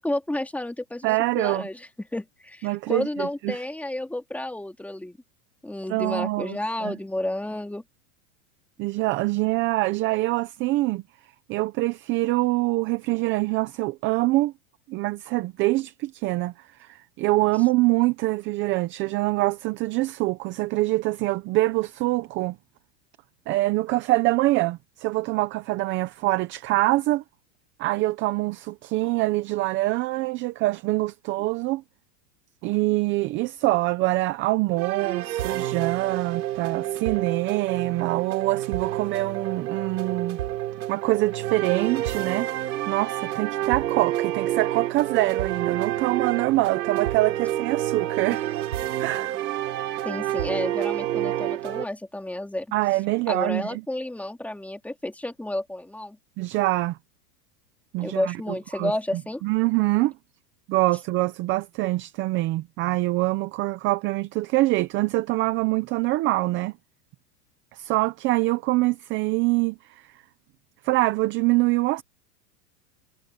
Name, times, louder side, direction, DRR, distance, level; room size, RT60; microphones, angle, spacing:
voice 1, 0.0-5.2 5.6-7.8 50.0-52.7 53.3-56.2 58.0-59.4, left 1 dB, 5° left, 2.4 m, -31 dB
voice 2, 1.0-1.6 2.6-3.6 5.9-7.0 8.8-11.0 11.5-14.5 14.9-22.6 23.5-27.2 27.8-31.8 32.6-40.4 40.9-42.5 42.9-48.4 49.0-49.4 52.7-53.8 56.4-57.0 57.9-58.4 58.7-60.1 60.7-66.7 67.7-70.2 70.8-72.0, right 19 dB, 25° right, 0.5 m, -25 dB
sound 1, 34.8-51.9, right 13 dB, 90° right, 5.5 m, -29 dB
supercardioid pair, 145°, 50 cm